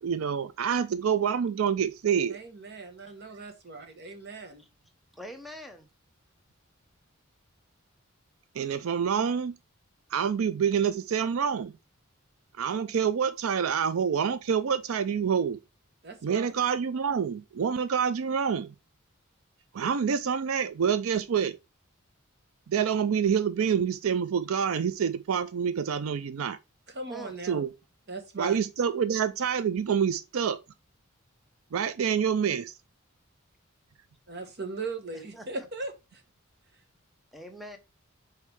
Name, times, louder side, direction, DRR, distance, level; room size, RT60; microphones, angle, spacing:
voice 1, 0.0-2.4 8.6-9.5 10.1-11.7 12.6-15.6 16.2-18.7 19.7-21.6 22.7-26.6 27.4-27.7 28.4-30.6 31.7-32.6, right 7 dB, 75° right, 0.4 m, -27 dB
voice 2, 2.3-4.6 16.0-16.5 26.9-27.6 28.1-28.6 34.3-35.9, right 3 dB, 50° right, 1.2 m, -38 dB
voice 3, 5.1-5.9 27.1-27.4 35.1-35.7 37.3-37.8, equal, ahead, 0.8 m, -44 dB
5.4 x 4.6 x 4.6 m
head